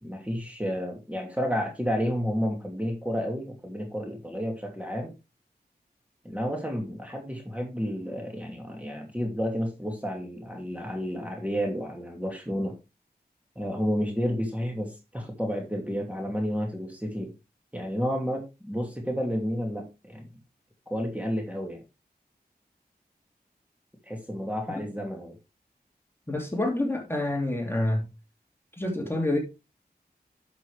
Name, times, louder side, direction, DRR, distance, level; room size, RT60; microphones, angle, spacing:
voice 1, 0.0-5.2 6.2-12.8 13.6-17.3 17.7-20.3 20.9-21.8 24.0-25.4, equal, 10° right, 2.7 m, -31 dB
voice 2, 26.3-28.1 28.8-29.4, left 1 dB, 15° left, 2.9 m, -27 dB
12.0 x 6.2 x 3.4 m
wide cardioid pair, 70°, 17 cm